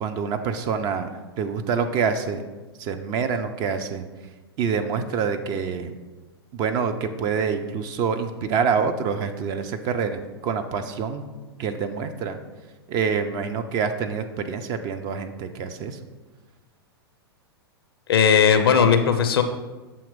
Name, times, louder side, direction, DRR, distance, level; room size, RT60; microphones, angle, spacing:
voice 1, 0.0-1.1 1.4-2.5 2.8-4.0 4.6-5.9 6.5-11.2 11.6-12.4 12.9-16.0, right 6 dB, 30° right, 7 dB, 0.4 m, -26 dB
voice 2, 18.1-19.4, left 7 dB, 65° left, 8 dB, 0.5 m, -17 dB
7.0 x 3.0 x 4.9 m, 1.2 s
figure-of-eight pair, 100°, 13 cm